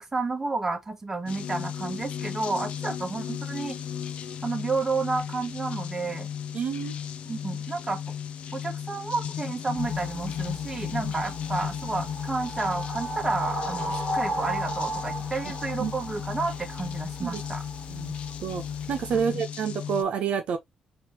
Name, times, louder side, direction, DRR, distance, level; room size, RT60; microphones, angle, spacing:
voice 1, 0.0-3.8 4.4-6.3 7.2-8.0 8.5-17.6, right 3 dB, 20° right, 1.2 m, -31 dB
sound 1, 1.3-20.0, left 8 dB, 65° left, 0.5 m, -35 dB
voice 2, 6.5-6.9 11.0-11.1 15.8-15.9 17.2-17.4 17.9-18.1 18.4-18.6 18.9-20.6, right 7 dB, 65° right, 0.9 m, -28 dB
sound 2, 9.8-19.2, equal, 25° left, 2.0 m, -36 dB
4.2 x 2.8 x 3.0 m
cardioid pair, 90°, 2 cm